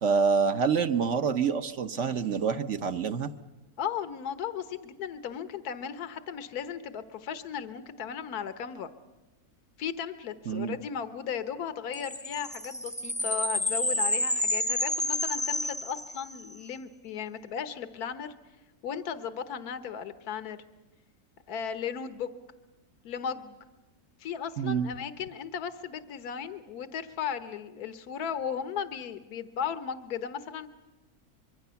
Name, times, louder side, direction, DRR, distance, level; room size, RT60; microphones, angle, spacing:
voice 1, 0.0-3.3 10.5-10.8 24.6-24.9, right 6 dB, 55° right, 9 dB, 1.2 m, -27 dB
voice 2, 3.8-8.9 9.8-18.3 18.8-20.6 21.5-22.3 23.0-23.6 24.2-30.7, left 7 dB, 80° left, 11 dB, 1.6 m, -36 dB
sound 1, 11.9-16.5, left 1 dB, 10° left, 0.4 m, -30 dB
25.0 x 23.0 x 7.0 m, 1.1 s
omnidirectional pair, 1.6 m